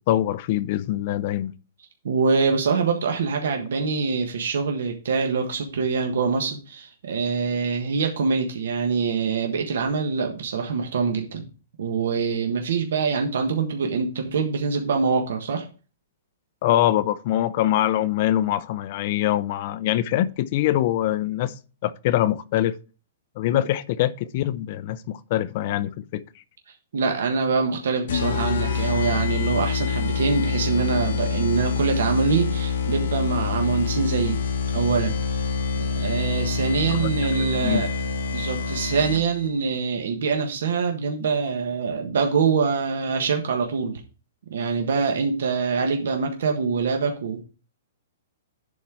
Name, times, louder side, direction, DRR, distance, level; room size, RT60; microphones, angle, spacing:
voice 1, 0.1-1.5 16.6-21.6 21.8-22.7 23.4-26.2 36.9-37.1 37.4-37.8, left 13 dB, 30° left, 0.5 m, -24 dB
voice 2, 2.0-11.4 11.8-15.6 23.5-23.6 26.9-34.4 34.7-35.4 35.8-37.9 38.3-44.0 44.5-47.5, right 5 dB, 65° right, 1.4 m, -24 dB
sound 1, 28.1-39.5, left 6 dB, 55° left, 1.5 m, -26 dB
11.0 x 4.3 x 4.7 m
hypercardioid pair, 180°, 0 cm